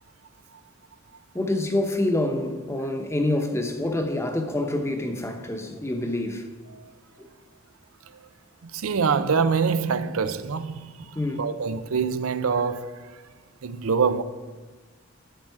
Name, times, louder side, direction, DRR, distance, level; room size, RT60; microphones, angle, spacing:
voice 1, 1.3-6.5 7.2-7.3 11.1-11.5, left 1 dB, 15° left, 0.9 m, -27 dB
voice 2, 8.7-10.9 11.4-12.9 13.6-14.2, right 5 dB, 90° right, 0.5 m, -24 dB
11.5 x 8.7 x 4.7 m
head